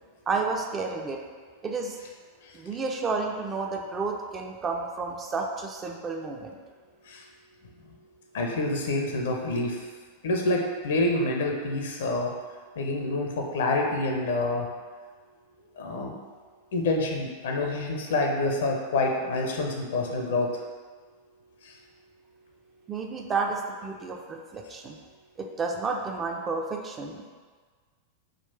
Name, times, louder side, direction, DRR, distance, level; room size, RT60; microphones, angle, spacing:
voice 1, 0.3-1.2 1.6-2.0 2.5-6.6 22.9-25.0 25.4-27.3, right 4 dB, 20° right, 2 dB, 0.4 m, -31 dB
voice 2, 8.3-9.9 10.2-12.3 12.8-14.7 15.8-16.2 16.7-20.5 21.6-21.8, left 2 dB, 60° left, 1 dB, 0.6 m, -27 dB
3.7 x 2.3 x 4.4 m, 1.5 s
figure-of-eight pair, 90°, 0 cm